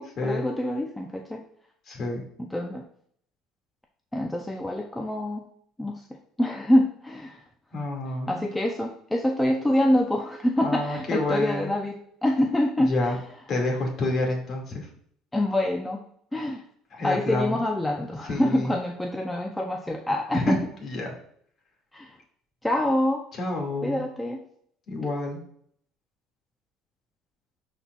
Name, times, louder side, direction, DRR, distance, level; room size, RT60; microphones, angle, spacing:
voice 1, 0.0-1.4 2.4-2.8 4.1-5.4 5.8-7.4 8.3-12.9 15.3-16.0 16.3-16.6 17.0-20.6 21.9-22.2 22.6-23.2 23.8-24.4, left 1 dB, 5° left, 1 dB, 0.5 m, -26 dB
voice 2, 1.9-2.2 7.7-8.4 10.6-11.7 12.8-13.2 13.5-14.9 16.9-17.6 18.2-18.7 20.3-20.6 20.8-21.1 23.4-24.0 24.9-25.4, left 2 dB, 40° left, 0 dB, 2.0 m, -28 dB
11.5 x 4.2 x 2.3 m, 0.64 s
cardioid pair, 140°, 0 cm